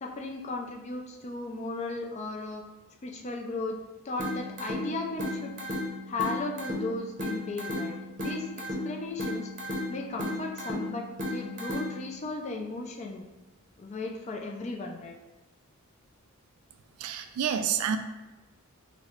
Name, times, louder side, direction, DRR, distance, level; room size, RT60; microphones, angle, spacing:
voice 1, 0.0-2.6 3.0-3.8 4.0-5.5 6.1-8.0 8.2-8.5 8.8-9.5 9.9-13.2 13.8-15.1, left 2 dB, 30° left, 1 dB, 0.4 m, -35 dB
sound 1, 4.2-12.2, left 1 dB, 35° right, 0.7 m, -35 dB
voice 2, 17.0-18.0, right 8 dB, 85° right, 8 dB, 0.3 m, -28 dB
3.8 x 2.1 x 3.0 m, 1.1 s
head